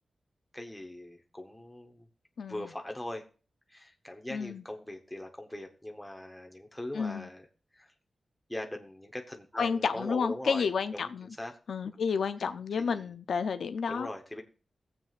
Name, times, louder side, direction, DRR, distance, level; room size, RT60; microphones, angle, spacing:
voice 1, 0.5-2.1 2.5-3.2 3.7-7.5 7.7-7.9 8.5-11.5 11.9-12.0 12.7-13.2 13.9-14.4, left 1 dB, 5° left, 0.9 m, -41 dB
voice 2, 4.3-4.6 6.9-7.3 9.6-11.3 11.7-14.1, left 6 dB, 85° left, 0.4 m, -31 dB
22.0 x 7.6 x 2.4 m
wide cardioid pair, 175°, 0 cm